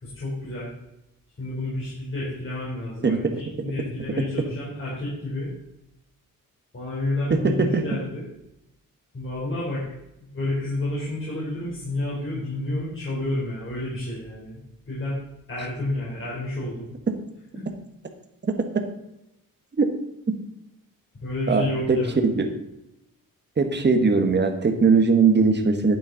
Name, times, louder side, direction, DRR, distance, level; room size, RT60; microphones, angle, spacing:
voice 1, 0.0-0.7 1.4-5.5 6.7-8.3 9.1-9.9 10.3-14.6 14.9-15.2 15.5-16.9 17.5-17.7 21.1-22.2, left 1 dB, 35° left, -7 dB, 4.0 m, -30 dB
voice 2, 3.0-3.3 4.2-4.3 7.3-7.8 19.8-19.9 21.5-21.6 21.9-22.0 22.4-22.5 23.6-26.0, right 4 dB, 30° right, 5 dB, 1.4 m, -20 dB
11.0 x 8.6 x 4.0 m, 0.86 s
wide cardioid pair, 135°, 34 cm